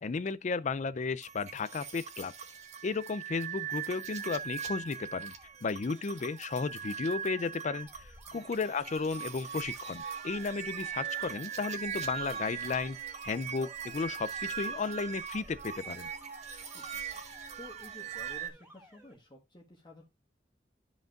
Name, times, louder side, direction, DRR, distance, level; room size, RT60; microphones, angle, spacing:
voice 1, 0.0-2.3 2.8-5.3 5.6-16.1, left 4 dB, 45° left, 0.4 m, -34 dB
sound 1, 1.2-18.5, right 8 dB, 40° right, 1.5 m, -40 dB
Alarm, 3.5-19.2, equal, 10° right, 3.2 m, -59 dB
sound 2, 5.9-6.6 7.3-7.4 8.1-13.4 13.7-15.3 15.8-18.7, right 4 dB, 70° right, 2.5 m, -60 dB
voice 2, 16.7-17.2 17.6-20.1, left 2 dB, 25° left, 1.4 m, -52 dB
13.0 x 5.2 x 2.4 m
head